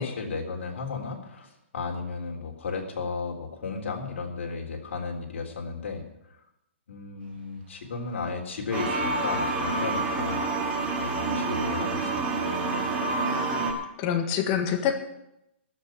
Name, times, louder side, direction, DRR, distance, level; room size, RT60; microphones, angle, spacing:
voice 1, 0.0-6.0 6.9-10.5 11.0-12.3, left 4 dB, 75° left, 1 dB, 3.6 m, -34 dB
sound 1, 8.7-13.7, right 3 dB, 20° right, 2.7 m, -28 dB
sound 2, 8.7-10.2, left 2 dB, 50° right, 2.5 m, -33 dB
voice 2, 13.2-15.0, left 8 dB, 30° left, 5 dB, 1.7 m, -28 dB
13.5 x 6.7 x 10.0 m, 0.85 s
hypercardioid pair, 160°, 7 cm